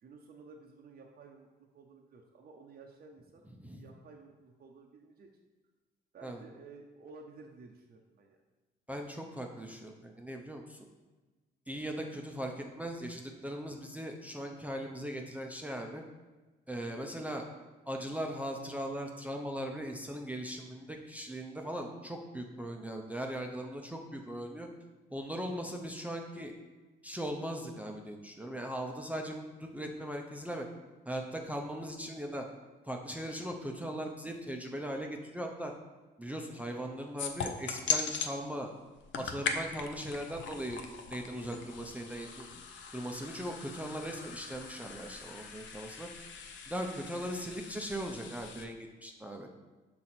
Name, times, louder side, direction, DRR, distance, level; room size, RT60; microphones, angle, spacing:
voice 1, 0.0-5.3 6.1-8.4 11.8-12.0, right 4 dB, 50° right, 1 dB, 0.6 m, -54 dB
voice 2, 8.9-10.9 11.7-16.0 16.7-17.5 17.9-24.7 25.1-26.5 27.0-30.6 31.1-32.5 32.8-35.7 36.2-38.7 39.2-40.8 41.1-42.5 42.9-46.1 46.7-49.5, equal, 5° right, 1 dB, 0.6 m, -39 dB
sound 1, 37.2-38.3 38.9-48.7, left 6 dB, 70° left, 0.6 m, -40 dB
5.9 x 3.8 x 4.2 m, 1.2 s
cardioid pair, 90°, 20 cm